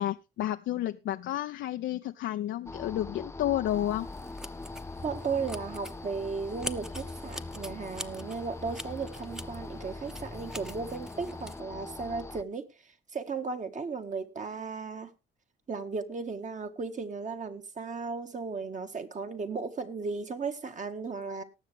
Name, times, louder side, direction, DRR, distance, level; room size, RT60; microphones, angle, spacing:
voice 1, 0.0-4.1, left 13 dB, 75° left, 0.6 m, -31 dB
sound 1, 2.7-12.4, left 3 dB, 15° left, 0.5 m, -42 dB
sound 2, 3.7-11.6, equal, 5° right, 0.9 m, -44 dB
voice 2, 5.0-12.7 13.1-15.1 15.7-21.4, right 4 dB, 40° right, 1.8 m, -35 dB
19.0 x 7.3 x 3.5 m
cardioid pair, 90°, 20 cm